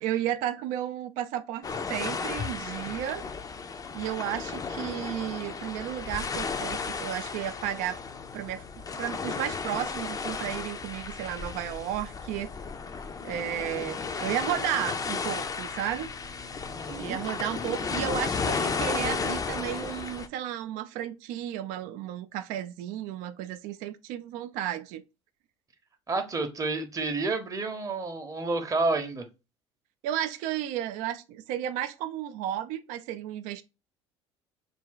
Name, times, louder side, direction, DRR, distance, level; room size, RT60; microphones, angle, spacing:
voice 1, 0.0-3.2 3.9-8.0 8.3-8.6 9.0-12.5 13.2-16.1 17.0-25.0 30.0-33.6, right 11 dB, 65° right, 0.4 m, -33 dB
sound 1, 1.6-20.3, left 5 dB, 25° left, 0.5 m, -34 dB
voice 2, 16.7-17.2 26.1-29.3, right 3 dB, 25° right, 0.8 m, -30 dB
3.3 x 2.2 x 3.7 m
hypercardioid pair, 65°, 14 cm